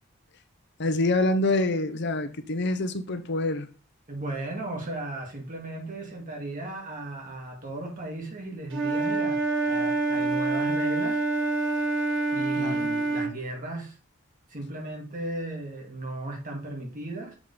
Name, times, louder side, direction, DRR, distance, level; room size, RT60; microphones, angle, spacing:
voice 1, 0.8-3.7 12.6-12.9, left 2 dB, 55° left, 0.8 m, -26 dB
voice 2, 4.1-11.2 12.3-14.0 14.5-17.4, right 1 dB, 40° right, 2.3 m, -36 dB
Wind instrument woodwind instrument, 8.7-13.3, right 3 dB, 60° right, 1.3 m, -26 dB
7.3 x 3.9 x 5.0 m
head